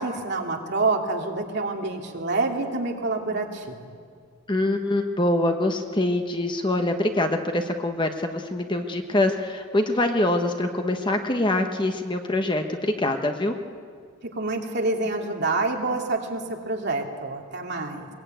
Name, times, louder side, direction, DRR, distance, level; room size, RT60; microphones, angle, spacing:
voice 1, 0.0-4.0 14.3-18.1, right 3 dB, 50° right, 1 dB, 2.6 m, -27 dB
voice 2, 4.5-13.6, left 1 dB, 20° left, 5 dB, 1.0 m, -24 dB
22.0 x 21.5 x 9.0 m, 2.1 s
head